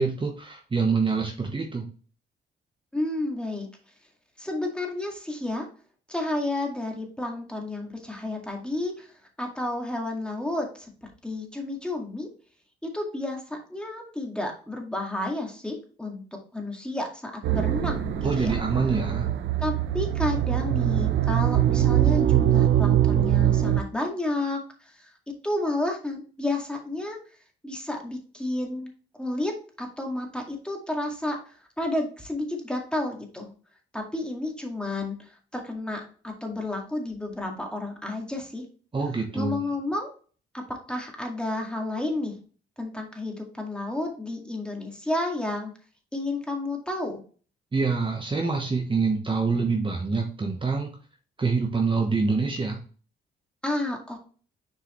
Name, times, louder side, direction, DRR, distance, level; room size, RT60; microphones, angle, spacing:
voice 1, 0.0-1.9 18.2-19.3 38.9-39.6 47.7-50.9 51.4-52.8, right 4 dB, 25° right, 1 dB, 1.1 m, -26 dB
voice 2, 2.9-3.7 4.4-5.7 6.1-9.1 9.4-12.3 12.8-16.2 16.5-18.6 19.6-25.1 25.4-27.2 27.6-28.9 29.2-33.5 33.9-38.6 39.3-40.1 40.7-42.4 42.8-45.7 46.1-47.2 53.6-54.2, left 2 dB, 5° left, 1 dB, 2.0 m, -31 dB
sound 1, 17.4-23.8, right 12 dB, 75° right, 0.8 m, -23 dB
6.8 x 4.7 x 3.1 m, 0.40 s
cardioid pair, 90°, 20 cm